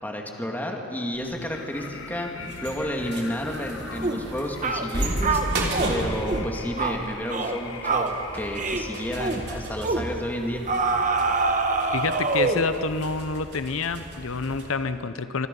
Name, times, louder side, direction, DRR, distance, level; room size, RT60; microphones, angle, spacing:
voice 1, 0.0-5.4 5.9-10.6, equal, 10° left, 1 dB, 2.3 m, -31 dB
sound 1, 1.1-14.7, right 1 dB, 60° right, 3.3 m, -34 dB
sound 2, 1.4-9.8, left 4 dB, 70° left, 1.4 m, -41 dB
sound 3, 4.0-4.2 4.6-4.9 5.2-5.9 6.3-6.5 6.8-7.0 7.3-7.6 7.8-8.1 8.6-8.9 9.2-9.4 9.8-10.1 10.7-12.7, right 3 dB, 40° right, 1.4 m, -25 dB
voice 2, 11.9-15.5, left 4 dB, 90° left, 11 dB, 0.8 m, -28 dB
25.5 x 24.0 x 5.5 m, 2.7 s
head